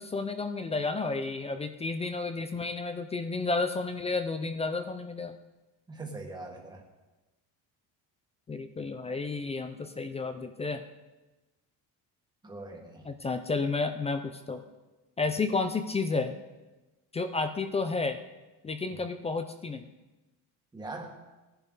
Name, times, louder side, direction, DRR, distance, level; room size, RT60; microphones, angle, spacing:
voice 1, 0.0-5.4 8.5-10.8 13.0-14.6 15.2-16.4 17.1-18.2 18.6-19.9, left 3 dB, 15° left, 8 dB, 0.3 m, -31 dB
voice 2, 5.9-6.8 12.4-13.0 18.9-19.0 20.7-21.1, right 2 dB, 10° right, 1 dB, 1.6 m, -41 dB
18.5 x 11.0 x 3.9 m, 1.1 s
cardioid pair, 180°, 41 cm